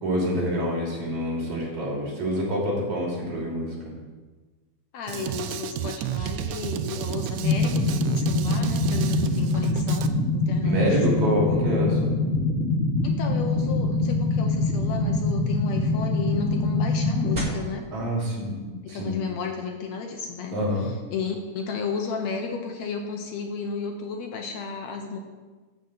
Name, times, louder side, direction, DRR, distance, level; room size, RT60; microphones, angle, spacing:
voice 1, 0.0-3.7 10.6-12.2 17.9-18.6 18.9-19.1 20.5-20.9, equal, 65° right, -3 dB, 4.6 m, -26 dB
voice 2, 4.9-11.6 13.0-17.9 18.7-25.2, left 5 dB, 65° left, 3 dB, 2.0 m, -33 dB
Drum kit, 5.1-10.1, right 11 dB, 90° right, 2.1 m, -31 dB
sound 1, 7.4-17.4, left 2 dB, 25° right, 2.5 m, -24 dB
12.0 x 5.3 x 8.0 m, 1.3 s
omnidirectional pair, 3.5 m